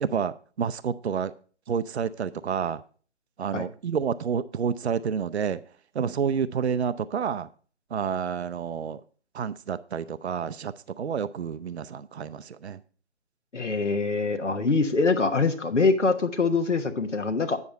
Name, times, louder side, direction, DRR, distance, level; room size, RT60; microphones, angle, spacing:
voice 1, 0.0-1.3 1.7-2.8 3.4-5.6 5.9-7.5 7.9-9.0 9.3-12.8, right 7 dB, 65° right, 15 dB, 0.6 m, -29 dB
voice 2, 13.5-17.6, left 4 dB, 85° left, 7 dB, 1.3 m, -24 dB
9.6 x 5.6 x 5.4 m, 0.41 s
figure-of-eight pair, 150°, 35 cm